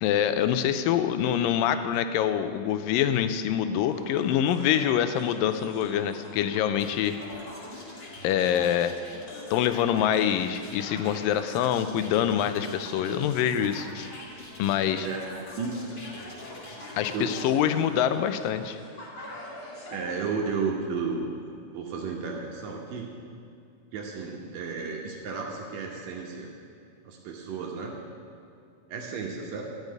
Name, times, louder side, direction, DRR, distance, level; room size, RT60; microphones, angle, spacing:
voice 1, 0.0-7.2 8.2-9.0 9.5-14.1 14.6-15.1 17.0-18.8, left 10 dB, 85° left, 10 dB, 2.3 m, -25 dB
sound 1, 3.9-20.3, left 1 dB, 45° left, 2.4 m, -45 dB
sound 2, 6.8-17.4, left 2 dB, 70° left, 0.5 m, -44 dB
voice 2, 19.9-21.3 21.7-23.1 23.9-26.5 27.0-27.9 28.9-29.7, right 5 dB, 80° right, -1 dB, 2.7 m, -33 dB
13.5 x 5.4 x 9.2 m, 2.5 s
omnidirectional pair, 3.9 m